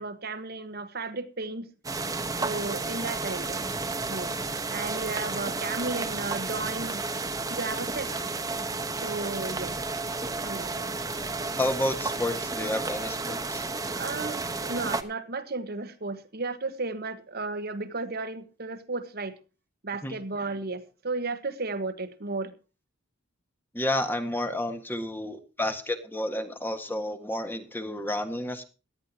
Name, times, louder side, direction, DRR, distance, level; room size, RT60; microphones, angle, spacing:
voice 1, 0.0-1.7 2.4-3.6 4.1-4.3 4.7-7.0 7.5-8.1 9.0-9.7 10.4-10.9 13.9-19.4 19.8-22.5, right 3 dB, 50° right, 10 dB, 1.3 m, -34 dB
sound 1, 1.8-15.0, right 3 dB, 15° right, 1.2 m, -32 dB
voice 2, 11.6-13.7 20.0-20.2 23.7-28.6, left 1 dB, 10° left, 7 dB, 1.7 m, -30 dB
18.0 x 12.5 x 2.9 m, 0.34 s
head